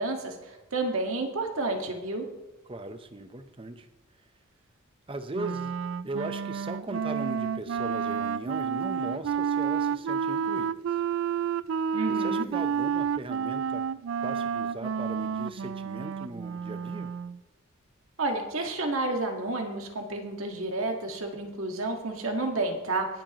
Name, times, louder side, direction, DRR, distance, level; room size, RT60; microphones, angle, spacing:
voice 1, 0.0-2.3 11.9-12.4 18.2-23.1, right 2 dB, 80° right, 3 dB, 1.7 m, -30 dB
voice 2, 2.7-3.9 5.1-5.7 6.0-10.8 12.1-13.8 14.2-17.1, right 2 dB, 25° right, 8 dB, 0.8 m, -38 dB
Wind instrument woodwind instrument, 5.3-17.4, right 7 dB, 60° right, 0.3 m, -30 dB
21.0 x 7.5 x 3.0 m, 1.1 s
head